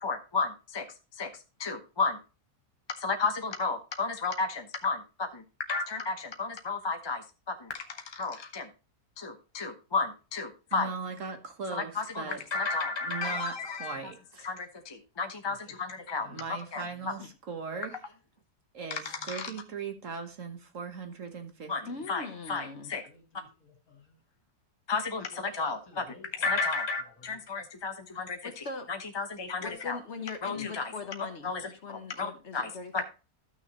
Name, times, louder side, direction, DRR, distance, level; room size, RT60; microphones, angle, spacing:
voice 1, 0.0-0.9 1.2-1.3 1.6-2.2 3.0-5.4 5.7-8.7 9.2-10.9 11.7-14.0 14.4-16.8 18.9-19.5 21.7-21.8 22.1-23.0 24.9-26.0 26.4-28.4 28.9-30.0 30.4-30.9 31.4-31.6 31.9-33.0, left 4 dB, 25° left, 5 dB, 0.7 m, -33 dB
voice 2, 10.7-12.4 13.0-14.5 16.3-17.9 18.7-21.7, right 5 dB, 55° right, 6 dB, 1.5 m, -39 dB
voice 3, 15.4-16.4 16.9-17.1 23.1-24.2 25.3-26.5 27.1-27.4, left 3 dB, 65° left, 3 dB, 2.7 m, -55 dB
voice 4, 21.9-22.9 28.2-28.9 29.6-33.0, left 4 dB, 50° left, 6 dB, 1.4 m, -41 dB
13.5 x 6.4 x 3.0 m, 0.32 s
omnidirectional pair, 1.7 m